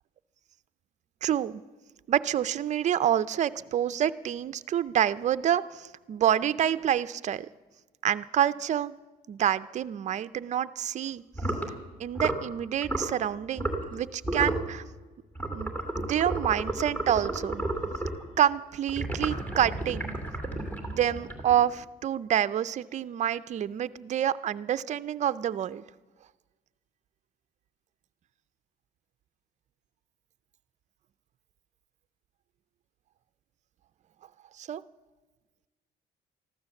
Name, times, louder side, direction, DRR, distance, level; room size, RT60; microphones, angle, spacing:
voice 1, 1.2-1.6 2.1-7.5 8.0-8.9 9.3-11.2 12.0-14.8 15.5-17.6 18.4-20.2 20.6-25.8 34.6-34.8, right 10 dB, 45° right, 13 dB, 0.5 m, -28 dB
sound 1, 11.3-11.7 12.1-12.5 12.8-13.1 13.6-13.9 14.2-14.7 15.4-18.2 18.9-21.7, right 2 dB, 10° left, 2.7 m, -32 dB
14.0 x 12.0 x 7.1 m, 1.3 s
cardioid pair, 110°, 17 cm